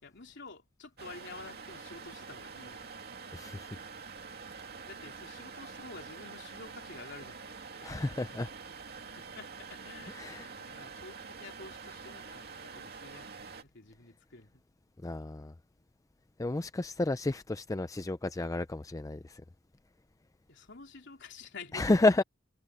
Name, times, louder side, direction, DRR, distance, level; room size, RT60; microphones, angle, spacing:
voice 1, 0.0-3.0 4.9-7.4 9.1-13.3 13.6-14.6 20.5-21.9, left 4 dB, 60° left, 3.6 m, -50 dB
sound 1, 1.0-13.6, right 5 dB, 55° right, 2.4 m, -46 dB
voice 2, 3.3-3.8 7.8-8.5 10.1-10.5 15.0-15.5 16.4-19.4 21.7-22.2, left 2 dB, 15° left, 0.4 m, -31 dB
head